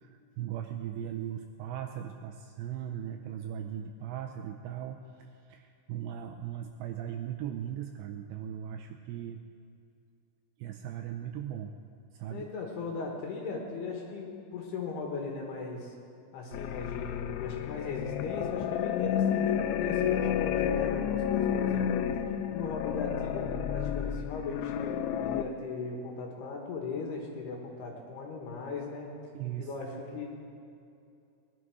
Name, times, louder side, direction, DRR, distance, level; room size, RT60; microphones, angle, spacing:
voice 1, 0.0-9.4 10.6-11.8 12.1-12.5 29.3-29.7, right 10 dB, 85° right, 5 dB, 2.6 m, -38 dB
voice 2, 12.3-15.9 16.3-22.0 22.5-29.1 29.6-30.2, left 4 dB, 65° left, 0 dB, 3.2 m, -38 dB
sound 1, 16.5-25.4, left 9 dB, 85° left, 2.4 m, -30 dB
20.5 x 11.5 x 4.8 m, 2.5 s
omnidirectional pair, 5.6 m